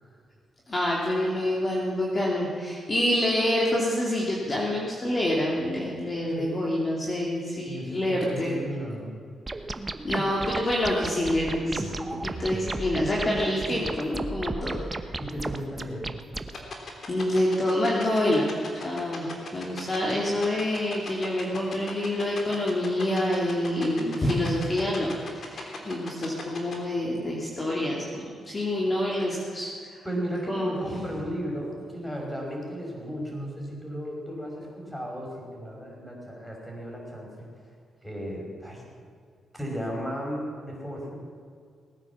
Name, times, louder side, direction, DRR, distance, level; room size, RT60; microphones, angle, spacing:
voice 1, 0.7-8.6 10.0-14.8 17.1-18.5 18.7-19.3 19.5-25.1 25.4-30.0 30.5-30.7, left 1 dB, 30° left, -3 dB, 2.7 m, -27 dB
voice 2, 7.7-9.2 15.2-16.2 30.0-37.5 38.0-38.8 39.5-41.2, equal, 5° left, -1 dB, 5.5 m, -35 dB
sound 1, 9.5-16.5, right 2 dB, 20° right, 1.0 m, -34 dB
sound 2, 16.5-26.8, left 4 dB, 55° left, 3.1 m, -37 dB
19.5 x 9.4 x 7.2 m, 2.2 s
cardioid pair, 80°, 0 cm